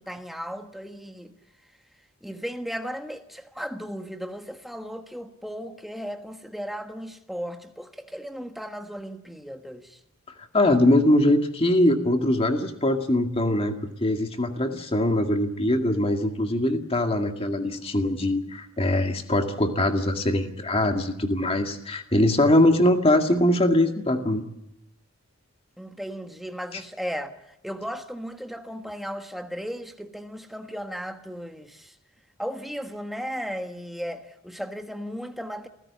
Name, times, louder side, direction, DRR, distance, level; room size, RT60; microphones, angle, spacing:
voice 1, 0.0-1.3 2.2-10.0 25.8-27.3 27.6-31.9 32.4-35.7, equal, ahead, 1.4 m, -35 dB
voice 2, 10.5-24.4 26.7-26.8, left 1 dB, 25° left, 2.0 m, -22 dB
27.5 x 15.5 x 8.4 m
head